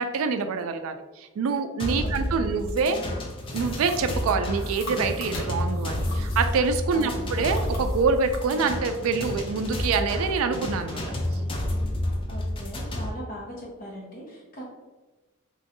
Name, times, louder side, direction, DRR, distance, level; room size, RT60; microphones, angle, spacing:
voice 1, 0.0-3.0 3.5-11.0, right 4 dB, 85° right, 8 dB, 0.3 m, -26 dB
sound 1, 1.8-13.1, left 1 dB, 25° left, 0.3 m, -30 dB
voice 2, 2.0-2.5 6.9-7.4 12.3-14.6, equal, 40° left, -3 dB, 0.9 m, -40 dB
sound 2, 3.4-6.7 7.1-8.5, left 2 dB, 75° left, 0.9 m, -42 dB
3.0 x 2.6 x 2.5 m, 1.2 s
head